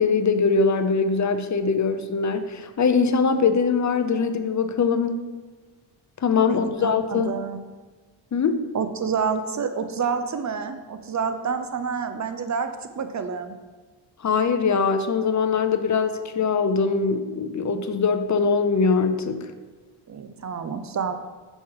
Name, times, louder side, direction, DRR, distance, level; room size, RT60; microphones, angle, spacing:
voice 1, 0.0-5.2 6.2-7.3 8.3-8.6 14.2-19.5, left 5 dB, 35° left, 9 dB, 0.6 m, -22 dB
voice 2, 6.5-7.6 8.7-12.7 13.0-13.5 20.1-21.1, right 6 dB, 35° right, 8 dB, 0.7 m, -28 dB
6.0 x 5.5 x 4.7 m, 1.4 s
cardioid pair, 95°, 48 cm